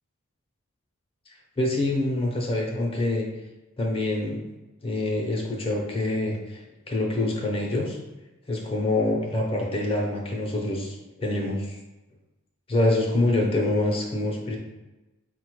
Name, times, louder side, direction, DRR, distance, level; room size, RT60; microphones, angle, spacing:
voice 1, 1.6-3.2 3.8-4.4 4.8-6.6 6.9-8.0 8.5-11.8 12.7-14.6, left 2 dB, 25° left, -1 dB, 0.6 m, -25 dB
4.2 x 2.2 x 4.6 m, 1.1 s
head